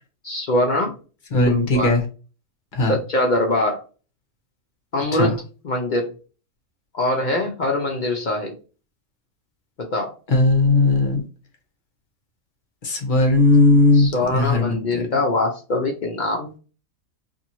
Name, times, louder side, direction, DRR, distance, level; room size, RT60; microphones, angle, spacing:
voice 1, 0.2-0.9 1.4-2.0 2.8-3.8 4.9-5.4 5.6-6.1 6.9-8.5 9.8-10.1 13.9-16.6, left 1 dB, 70° left, 1 dB, 0.4 m, -23 dB
voice 2, 1.3-2.0 2.7-2.9 5.2-5.3 10.3-11.2 12.8-15.0, left 2 dB, 45° left, 3 dB, 0.8 m, -17 dB
2.9 x 2.6 x 2.6 m, 0.35 s
omnidirectional pair, 1.5 m